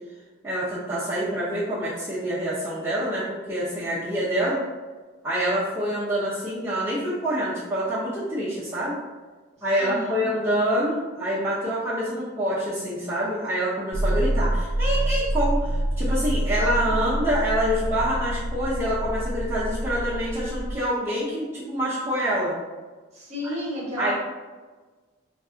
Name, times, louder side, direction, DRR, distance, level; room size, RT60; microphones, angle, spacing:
voice 1, 0.4-4.6 5.2-9.0 9.6-22.6 24.0-24.1, equal, 15° right, -11 dB, 0.5 m, -26 dB
voice 2, 9.6-10.3 16.6-17.2 23.1-24.1, equal, 35° right, -5 dB, 0.9 m, -33 dB
sound 1, 13.9-20.8, right 1 dB, 85° right, 0.4 m, -26 dB
3.9 x 2.3 x 2.4 m, 1.3 s
head